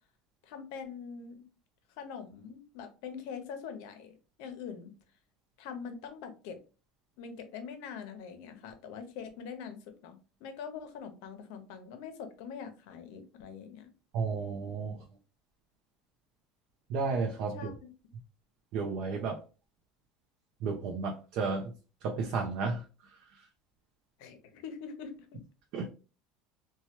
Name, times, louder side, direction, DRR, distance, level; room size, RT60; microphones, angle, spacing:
voice 1, 0.4-1.5 2.0-4.9 5.6-6.6 7.2-13.9 17.5-18.1 24.2-25.4, left 6 dB, 75° left, 8 dB, 0.7 m, -44 dB
voice 2, 14.1-15.0 16.9-17.7 18.7-19.4 20.6-21.7 22.0-22.8 25.7-25.9, right 4 dB, 60° right, 2 dB, 0.5 m, -32 dB
3.1 x 2.2 x 2.8 m, 0.33 s
supercardioid pair, 130°, 0 cm